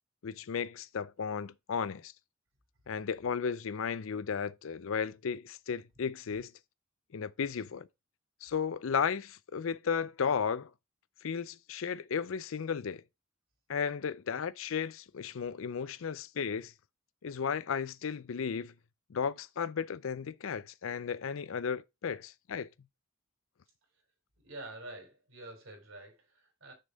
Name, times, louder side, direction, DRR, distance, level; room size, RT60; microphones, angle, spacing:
voice 1, 0.2-2.1 2.9-6.5 7.1-7.9 8.4-10.7 11.2-13.0 13.7-16.7 17.2-18.7 19.1-22.7, left 6 dB, 75° left, 0.5 m, -34 dB
voice 2, 24.4-26.7, right 2 dB, 70° right, 3.6 m, -47 dB
6.5 x 5.4 x 3.9 m
head